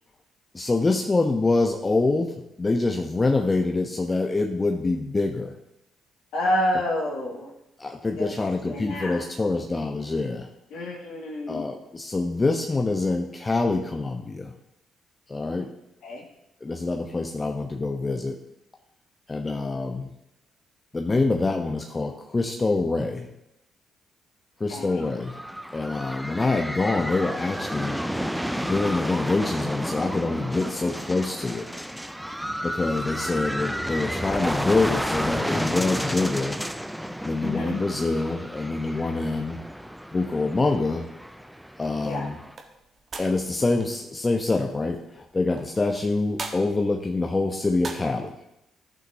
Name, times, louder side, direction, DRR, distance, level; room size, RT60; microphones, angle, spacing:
voice 1, 0.5-5.6 7.8-10.5 11.5-14.5 15.3-15.7 16.6-18.4 19.3-20.1 20.9-23.3 24.6-25.4 25.7-28.0 28.6-31.7 32.6-36.6 37.2-39.6 40.1-41.0 41.8-42.4 43.2-48.4, left 3 dB, 25° left, 3 dB, 0.9 m, -25 dB
voice 2, 6.3-7.5 8.2-9.2 10.7-11.6 16.0-16.2 24.7-25.0 37.4-37.8 42.0-42.3, left 1 dB, 65° left, 0 dB, 2.1 m, -29 dB
sound 1, 24.9-42.5, equal, ahead, 0.5 m, -32 dB
sound 2, 42.4-48.3, right 3 dB, 45° right, 1.4 m, -42 dB
14.5 x 6.0 x 2.8 m, 0.86 s
hypercardioid pair, 45°, 0 cm